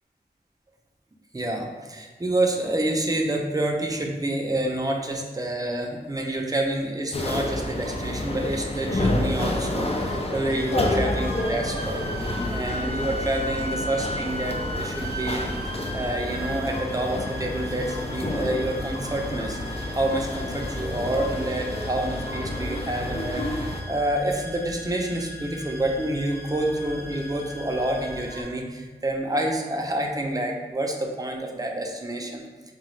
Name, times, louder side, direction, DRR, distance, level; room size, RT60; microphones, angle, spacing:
voice 1, 1.3-32.4, right 1 dB, 20° right, 1 dB, 0.5 m, -28 dB
sound 1, 7.1-23.8, left 1 dB, 35° left, 0.4 m, -29 dB
sound 2, 10.5-28.4, equal, 60° right, 0.7 m, -37 dB
4.8 x 2.3 x 3.1 m, 1.4 s
wide cardioid pair, 55°, 18 cm